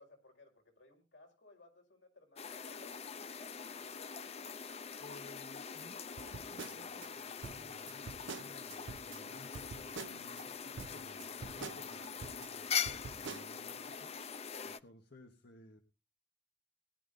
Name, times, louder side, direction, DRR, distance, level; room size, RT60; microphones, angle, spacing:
voice 1, 0.0-4.5, left 2 dB, 85° left, 1 dB, 5.3 m, -62 dB
sound 1, 2.4-14.8, left 7 dB, 35° left, 0.6 m, -43 dB
voice 2, 4.9-14.2 14.6-15.8, left 2 dB, 60° left, 5 dB, 1.3 m, -58 dB
sound 2, 6.2-7.1 7.4-9.2 9.5-10.4 10.8-12.5 12.8-13.5, right 5 dB, 80° right, 0.6 m, -47 dB
19.5 x 11.0 x 2.6 m, 0.30 s
head